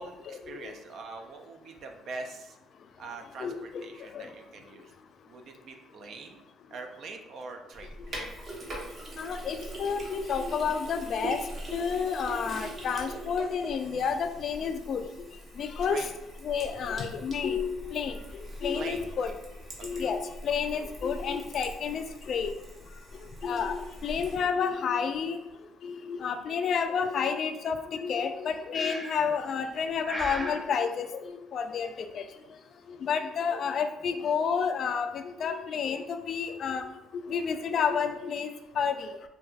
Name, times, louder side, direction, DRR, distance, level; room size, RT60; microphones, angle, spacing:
voice 1, 0.0-2.6 3.0-4.9 5.3-6.4 6.7-8.0 15.8-16.1 18.7-19.4 19.8-20.1 29.6-29.9, right 3 dB, 60° right, 4 dB, 0.4 m, -43 dB
voice 2, 3.4-3.8 4.1-4.3 9.2-11.4 11.7-15.0 15.6-16.0 16.4-18.1 18.6-19.3 19.8-22.5 23.4-25.4 25.8-31.9 32.1-32.2 32.9-36.9 37.3-38.5 38.8-39.1, left 6 dB, 55° left, 8 dB, 0.3 m, -30 dB
Sink (filling or washing), 7.7-24.3, right 1 dB, 40° right, 0.9 m, -42 dB
Breathing, 28.7-29.3 30.0-30.6, equal, 10° right, 0.6 m, -35 dB
4.1 x 2.3 x 2.4 m, 0.93 s
cardioid pair, 115°, 0 cm